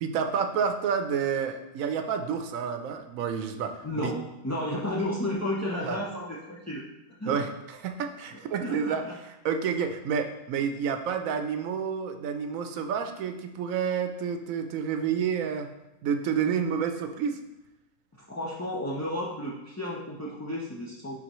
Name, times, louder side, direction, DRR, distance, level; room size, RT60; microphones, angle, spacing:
voice 1, 0.0-4.1 5.8-6.0 7.3-15.7 16.0-17.4, right 7 dB, 85° right, 7 dB, 1.1 m, -29 dB
voice 2, 3.8-4.2 4.4-6.8 7.2-7.4 8.6-9.1 18.3-21.2, left 1 dB, 20° left, -6 dB, 0.5 m, -32 dB
11.0 x 4.0 x 3.0 m, 0.94 s
omnidirectional pair, 1.4 m